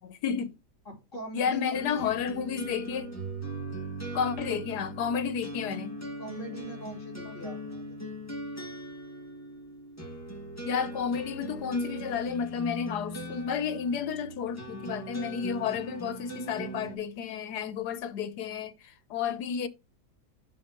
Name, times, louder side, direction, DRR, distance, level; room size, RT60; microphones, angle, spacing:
voice 1, 0.0-0.5 1.3-3.1 4.1-6.0 7.2-7.4 10.6-19.7, left 7 dB, 75° left, 1.5 m, -31 dB
voice 2, 0.8-2.1 6.2-8.1, left 1 dB, 50° left, 3.2 m, -40 dB
sound 1, 1.7-17.0, right 1 dB, 10° left, 2.0 m, -40 dB
11.0 x 4.4 x 3.1 m
omnidirectional pair, 1.8 m